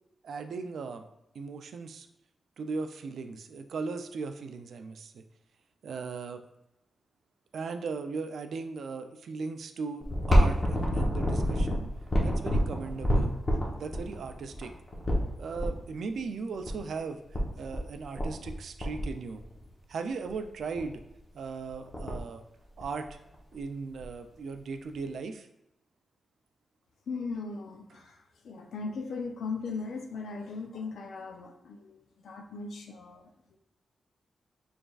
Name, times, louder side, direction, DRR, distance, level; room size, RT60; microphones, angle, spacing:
voice 1, 0.2-1.1 1.3-2.1 2.6-5.2 5.8-6.4 7.5-11.8 12.2-13.4 13.7-14.7 15.4-19.4 19.9-21.0 21.3-22.4 22.8-23.2 23.5-25.5, right 4 dB, 70° right, 8 dB, 0.4 m, -37 dB
sound 1, 10.0-15.7 16.6-16.7 17.0-17.1 17.3-17.8 18.2-18.5 18.8-19.7 20.2-20.4 20.8-21.0 21.4-21.5 21.7-22.3 22.8-23.6 24.0-24.1 25.0-25.1, equal, 20° left, 0.9 m, -27 dB
voice 2, 27.1-33.3, left 4 dB, 75° left, 4 dB, 0.6 m, -38 dB
6.4 x 3.3 x 2.3 m, 0.86 s
wide cardioid pair, 170°, 0 cm